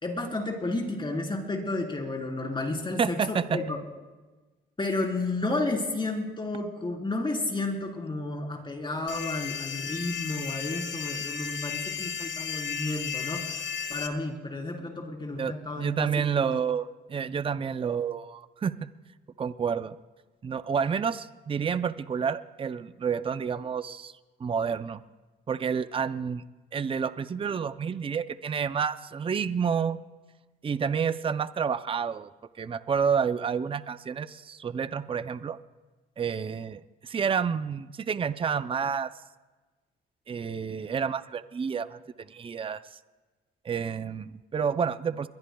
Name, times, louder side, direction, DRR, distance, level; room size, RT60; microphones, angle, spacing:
voice 1, 0.0-3.8 4.8-13.6 13.9-16.1 16.4-16.5, left 2 dB, 25° left, 1 dB, 3.9 m, -32 dB
voice 2, 3.0-3.6 15.4-18.9 19.4-20.0 20.4-24.1 24.4-25.0 25.5-26.4 26.7-30.0 30.6-32.3 32.6-35.6 36.2-39.1 40.3-42.0 42.3-42.8 43.6-45.3, right 6 dB, 25° right, 13 dB, 0.5 m, -29 dB
sound 1, 9.1-14.1, left 7 dB, 70° left, 1.5 m, -34 dB
22.0 x 21.0 x 2.3 m, 1.2 s
cardioid pair, 90°, 20 cm